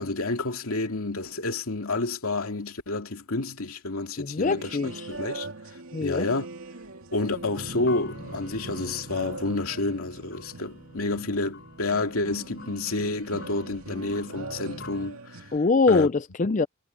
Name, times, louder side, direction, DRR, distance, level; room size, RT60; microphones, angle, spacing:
voice 1, 0.0-4.8 5.1-5.5 6.0-6.5 7.1-15.5 15.9-16.1, left 2 dB, 90° left, 2.5 m, -29 dB
voice 2, 4.2-5.0 5.9-6.3 15.5-16.7, left 3 dB, 35° left, 0.5 m, -23 dB
sound 1, 4.5-15.6, right 3 dB, 85° right, 2.5 m, -42 dB
sound 2, 7.4-15.1, left 2 dB, 55° left, 5.4 m, -45 dB
head